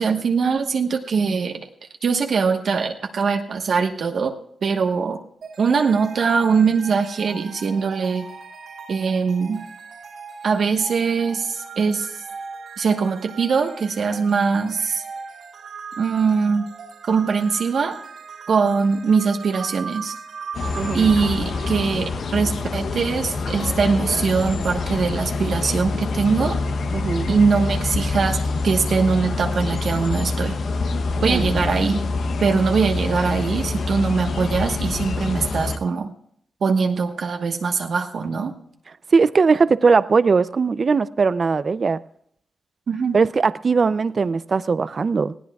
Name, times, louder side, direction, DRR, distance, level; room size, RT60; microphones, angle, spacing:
voice 1, 0.0-1.6 2.0-4.3 4.6-5.2 5.6-8.3 8.9-9.6 10.4-12.1 12.8-15.0 16.0-16.7 17.0-18.0 18.5-20.2 20.9-26.6 27.3-30.6 31.2-32.0 32.4-36.1 36.6-38.5 42.9-43.2, right 5 dB, 65° right, 1.2 m, -22 dB
sound 1, 5.4-22.6, right 5 dB, 85° right, 4.0 m, -39 dB
sound 2, 20.5-35.8, left 3 dB, 70° left, 0.8 m, -26 dB
voice 2, 20.8-21.1 26.9-27.3 31.3-31.4 39.1-42.0 43.1-45.3, right 4 dB, 45° right, 0.4 m, -19 dB
20.0 x 16.5 x 2.3 m
cardioid pair, 95°, 0 cm